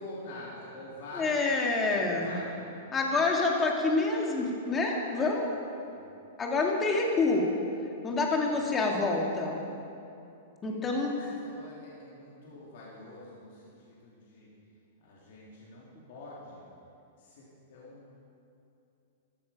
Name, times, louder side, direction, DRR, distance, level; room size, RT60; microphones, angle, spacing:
voice 1, 0.0-1.4 1.9-2.6 5.1-5.3 5.9-6.1 8.5-8.6 10.6-10.7 11.0-14.5 15.0-16.6 17.2-17.4 17.7-18.1, left 1 dB, 65° left, -7 dB, 3.5 m, -46 dB
voice 2, 1.1-2.4 2.9-5.5 6.4-7.5 8.0-9.6 10.6-11.1, left 3 dB, 20° left, 0 dB, 2.0 m, -27 dB
13.0 x 12.5 x 5.3 m, 2.7 s
hypercardioid pair, 145°, 0 cm